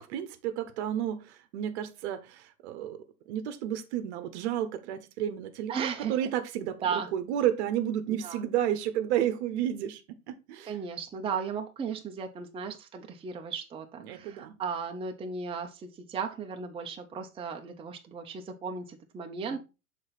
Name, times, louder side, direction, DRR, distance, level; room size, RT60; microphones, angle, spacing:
voice 1, 0.0-3.0 3.3-10.7 14.0-14.6 19.4-19.6, right 10 dB, 50° right, 0.9 m, -32 dB
voice 2, 5.7-6.1 6.8-7.1 8.1-8.4 10.6-19.6, right 6 dB, 15° right, 0.7 m, -35 dB
6.4 x 4.0 x 4.1 m
figure-of-eight pair, 85°, 43 cm